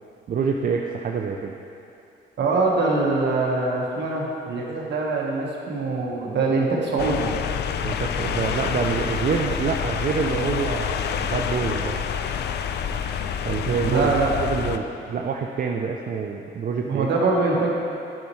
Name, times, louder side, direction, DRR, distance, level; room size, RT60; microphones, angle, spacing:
voice 1, 0.3-1.6 7.8-12.0 13.4-14.1 14.4-17.1, right 5 dB, 45° right, 1 dB, 0.5 m, -26 dB
voice 2, 2.4-7.3 13.6-14.4 16.8-17.7, right 3 dB, 60° right, -2 dB, 1.4 m, -23 dB
sound 1, 7.0-14.8, left 7 dB, 60° left, 0.4 m, -27 dB
10.5 x 5.4 x 3.1 m, 2.7 s
cardioid pair, 90°, 20 cm